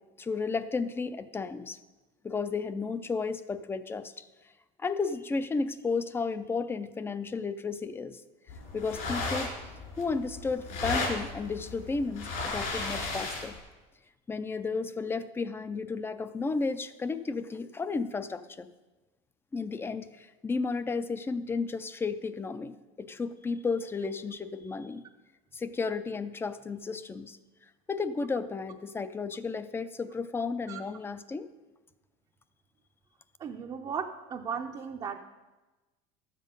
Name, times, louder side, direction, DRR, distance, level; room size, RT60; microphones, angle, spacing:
voice 1, 0.2-1.8 2.2-4.3 4.8-8.2 8.7-9.5 10.0-13.6 14.3-18.7 19.5-25.0 25.5-27.4 27.9-31.5, left 4 dB, 15° left, 13 dB, 0.4 m, -33 dB
sound 1, 8.5-13.6, left 3 dB, 65° left, 3.3 m, -35 dB
voice 2, 33.4-35.2, right 6 dB, 30° right, 2 dB, 0.6 m, -36 dB
12.0 x 7.5 x 5.3 m, 1.1 s
cardioid pair, 140°, 15 cm